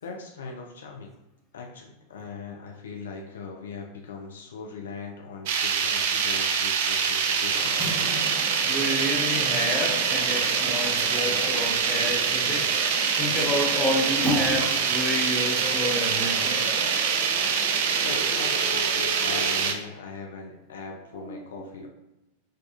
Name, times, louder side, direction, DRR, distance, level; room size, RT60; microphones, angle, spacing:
voice 1, 0.0-1.1 1.5-8.0 18.0-21.9, left 4 dB, 65° left, 1 dB, 0.3 m, -40 dB
sound 1, 5.5-19.7, right 6 dB, 50° right, 0.3 m, -25 dB
sound 2, 7.5-19.7, equal, 20° right, 0.9 m, -36 dB
voice 2, 8.6-12.7 13.1-16.7 21.1-21.9, left 1 dB, 10° left, -2 dB, 0.6 m, -29 dB
2.4 x 2.3 x 2.4 m, 0.96 s
figure-of-eight pair, 90°, 0 cm